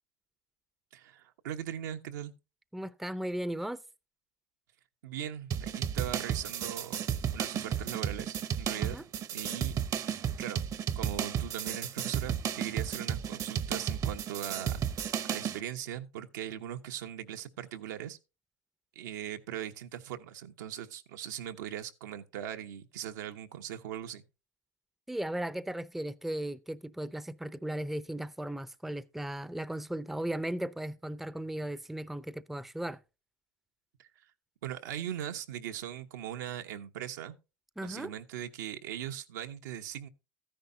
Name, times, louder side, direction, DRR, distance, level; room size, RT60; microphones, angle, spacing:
voice 1, 0.9-2.3 5.0-7.0 7.3-9.0 9.3-9.8 10.4-10.7 10.9-14.8 15.3-18.2 18.9-24.2 34.0-34.1 34.6-37.3 37.8-40.1, right 10 dB, 80° right, 1.2 m, -40 dB
voice 2, 2.7-3.8 8.8-9.0 25.1-33.0 37.8-38.1, right 1 dB, ahead, 0.5 m, -36 dB
sound 1, 5.5-15.6, right 9 dB, 35° right, 0.8 m, -33 dB
13.5 x 10.0 x 2.8 m
supercardioid pair, 105°, 10 cm